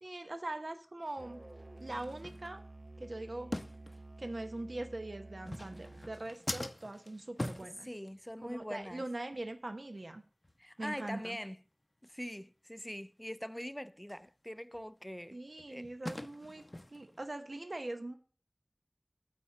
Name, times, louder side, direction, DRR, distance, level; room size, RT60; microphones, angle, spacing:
voice 1, 0.0-1.4 1.8-2.6 3.0-3.5 4.2-7.9 8.4-10.2 10.8-11.4 15.3-16.6 16.9-18.2, right 2 dB, 80° right, 0.9 m, -42 dB
sound 1, 1.0-1.2 1.8-2.9 3.5-4.4 5.3-8.5 8.8-9.0 9.3-9.5 10.0-10.1 10.4-10.6 11.0-11.1 11.5-11.6 12.0-12.1 14.1-14.2 14.7-17.2, left 1 dB, 45° left, 0.7 m, -43 dB
Musical instrument, 1.2-6.3, right 2 dB, 55° right, 0.6 m, -51 dB
voice 2, 7.8-9.0 10.6-11.6 12.0-15.4 15.7-15.9, equal, 10° left, 0.3 m, -43 dB
8.8 x 4.1 x 7.0 m
wide cardioid pair, 40°, 0 cm